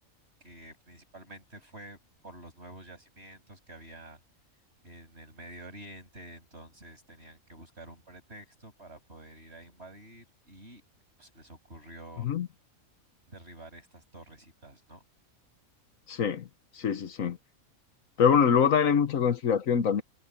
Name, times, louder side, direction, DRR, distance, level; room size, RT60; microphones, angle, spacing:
voice 1, 0.4-4.2 4.8-10.8 11.2-12.3 13.3-15.0, right 1 dB, 45° right, 7.9 m, -49 dB
voice 2, 16.1-16.5 16.8-17.4 18.2-20.0, left 7 dB, 70° left, 1.4 m, -24 dB
omnidirectional pair, 1.5 m